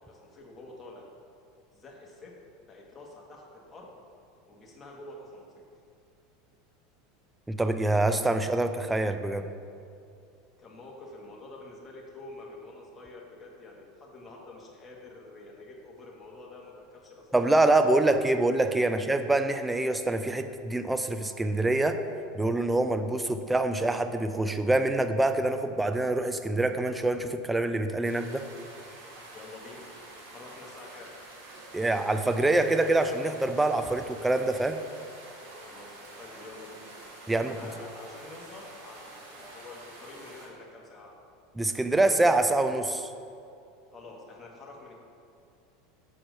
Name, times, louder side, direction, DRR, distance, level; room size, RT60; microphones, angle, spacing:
voice 1, 0.0-1.1 1.7-2.4 2.7-3.9 4.5-5.6 10.6-17.3 17.6-18.1 18.8-19.1 29.3-29.9 30.3-31.1 31.6-31.9 35.7-36.9 37.3-41.2 43.9-44.9, left 2 dB, 20° left, -2 dB, 1.6 m, -47 dB
voice 2, 7.5-9.5 17.3-22.0 22.3-28.5 31.7-34.8 37.3-37.5 41.6-43.1, right 2 dB, 10° right, 8 dB, 0.5 m, -25 dB
sound 1, 28.0-40.5, right 2 dB, 70° right, 1.9 m, -48 dB
6.4 x 4.4 x 6.5 m, 2.5 s
hypercardioid pair, 105°, 0 cm